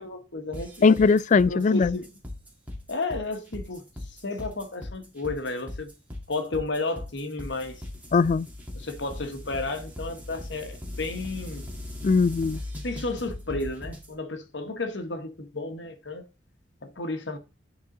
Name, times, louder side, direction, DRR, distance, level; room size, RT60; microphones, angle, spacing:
voice 1, 0.0-0.9 1.5-2.1 2.9-5.9 6.3-7.8 8.7-11.6 12.8-16.3 16.8-17.4, left 3 dB, 70° left, 1.2 m, -33 dB
sound 1, 0.5-14.1, left 1 dB, 10° right, 2.1 m, -39 dB
voice 2, 0.8-2.0 8.1-8.5 12.0-12.6, left 4 dB, 40° left, 0.3 m, -20 dB
10.5 x 4.1 x 3.8 m
head